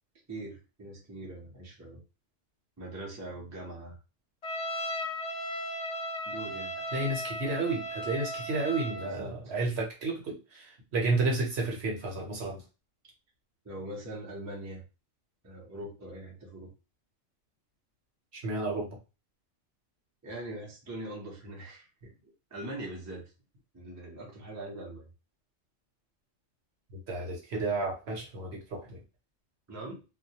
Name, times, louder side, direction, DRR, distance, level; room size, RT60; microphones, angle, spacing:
voice 1, 0.3-2.0 2.8-4.0 6.3-6.7 9.0-9.4 13.6-14.8 15.4-16.7 20.2-23.3 23.7-25.1 29.7-30.0, right 1 dB, 20° right, -1 dB, 0.5 m, -42 dB
Trumpet, 4.4-9.2, equal, 75° left, 0.3 m, -36 dB
voice 2, 6.9-12.6 18.4-19.0 26.9-29.0, right 3 dB, 60° right, 0 dB, 0.9 m, -31 dB
2.2 x 2.2 x 2.7 m, 0.30 s
omnidirectional pair, 1.3 m